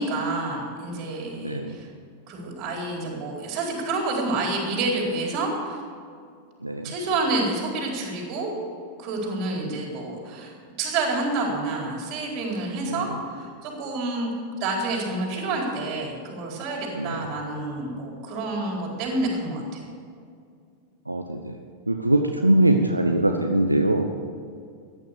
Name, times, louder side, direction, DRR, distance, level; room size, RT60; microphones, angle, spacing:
voice 1, 0.0-1.9 2.3-5.8 6.8-8.5 9.0-14.3 14.6-19.8, right 2 dB, 40° right, -1 dB, 4.3 m, -28 dB
voice 2, 1.4-1.8 6.6-6.9 12.8-13.2 16.9-17.3 21.1-21.6 21.9-24.1, right 1 dB, 85° right, 4 dB, 0.8 m, -22 dB
15.0 x 10.0 x 6.9 m, 2.3 s
figure-of-eight pair, 90°, 0 cm